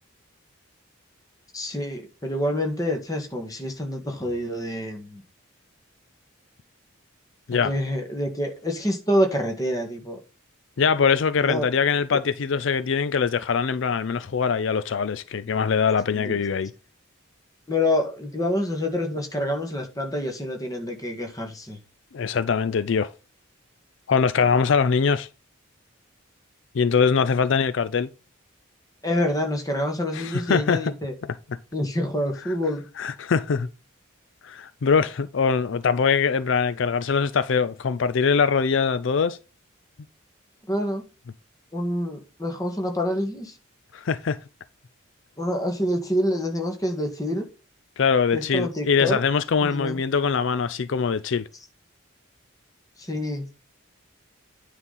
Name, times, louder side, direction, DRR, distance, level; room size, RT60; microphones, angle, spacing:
voice 1, 1.5-5.2 7.5-10.2 11.4-11.7 12.1-12.2 16.1-16.4 17.7-21.8 29.0-31.1 31.7-32.8 40.7-41.0 41.7-43.5 45.4-47.5 48.3-49.2 49.6-50.0 53.0-53.4, left 1 dB, 15° left, 1.7 m, -27 dB
voice 2, 10.8-16.7 22.1-23.1 24.1-25.3 26.7-28.1 30.1-30.9 33.0-33.7 34.4-39.4 43.9-44.4 48.0-51.4, left 6 dB, 65° left, 0.4 m, -22 dB
9.7 x 4.1 x 5.5 m
head